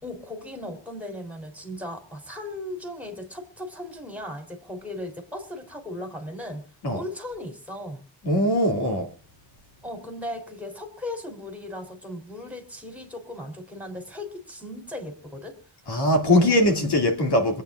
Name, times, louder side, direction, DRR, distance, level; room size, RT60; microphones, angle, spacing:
voice 1, 0.0-6.7 6.9-8.0 9.8-15.6 16.3-16.5, left 1 dB, 5° right, 3.5 m, -37 dB
voice 2, 8.2-9.1 15.9-17.6, left 1 dB, 60° left, 2.6 m, -21 dB
26.5 x 8.9 x 2.5 m
wide cardioid pair, 110°, 44 cm